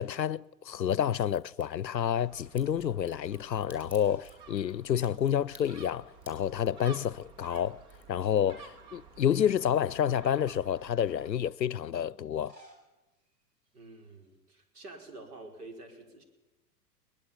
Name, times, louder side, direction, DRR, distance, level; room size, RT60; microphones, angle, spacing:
voice 1, 0.0-7.8 8.1-12.5, left 9 dB, 90° left, 0.6 m, -29 dB
Crack, 1.3-1.7 2.6-8.8 9.1-9.8 10.1-10.2, left 2 dB, 5° right, 5.4 m, -56 dB
Gull seagull, 2.2-11.3, right 5 dB, 40° right, 2.3 m, -53 dB
sound 1, 3.9-4.4 4.8-4.9 6.2-6.7 7.0-8.2 8.7-8.8 9.7-10.9 12.2-14.4, right 2 dB, 80° right, 6.9 m, -61 dB
voice 2, 13.7-16.2, right 2 dB, 65° right, 5.4 m, -48 dB
22.5 x 19.5 x 7.4 m
figure-of-eight pair, 100°, 49 cm